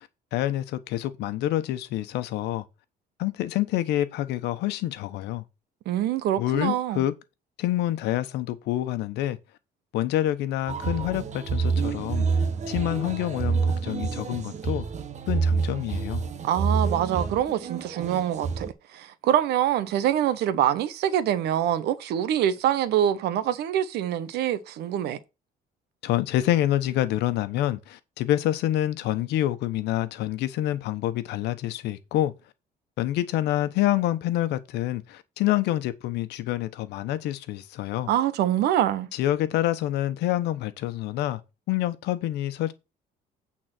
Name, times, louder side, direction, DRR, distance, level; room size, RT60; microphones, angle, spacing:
voice 1, 0.0-2.6 3.2-5.4 6.4-7.1 7.6-9.4 9.9-12.3 12.7-14.8 15.3-16.2 26.0-32.3 33.0-38.1 39.1-41.4 41.7-42.7, left 13 dB, 85° left, 1.1 m, -27 dB
voice 2, 5.9-7.0 16.4-18.7 18.9-25.2 38.1-39.1, right 11 dB, 75° right, 1.1 m, -25 dB
sound 1, 10.7-18.7, right 5 dB, 45° right, 1.3 m, -28 dB
8.9 x 4.1 x 6.0 m
cardioid pair, 110°, 17 cm